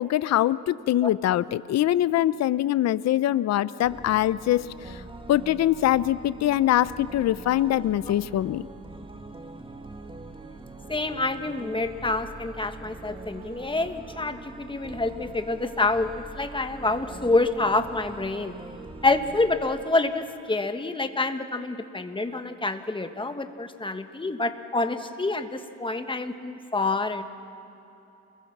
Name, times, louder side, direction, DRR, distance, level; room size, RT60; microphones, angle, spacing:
voice 1, 0.0-5.0 5.3-8.7, left 13 dB, 60° left, 17 dB, 0.6 m, -23 dB
sound 1, 3.8-19.8, right 2 dB, 15° right, 1.9 m, -43 dB
voice 2, 10.9-18.5 19.0-27.2, left 2 dB, 15° left, 8 dB, 1.5 m, -27 dB
28.5 x 22.0 x 6.1 m, 3.0 s
cardioid pair, 90°, 30 cm